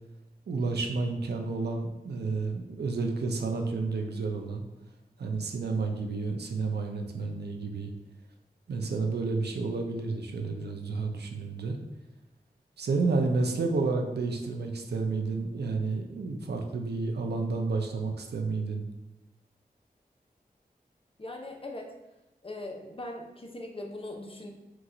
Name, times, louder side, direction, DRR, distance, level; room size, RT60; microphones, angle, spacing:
voice 1, 0.5-4.6 5.2-7.9 8.7-11.8 12.8-18.8, right 3 dB, 90° right, 3 dB, 0.6 m, -30 dB
voice 2, 21.2-21.9 22.4-24.5, left 1 dB, 35° left, 2 dB, 0.8 m, -40 dB
4.5 x 2.5 x 3.9 m, 1.0 s
cardioid pair, 50°, 17 cm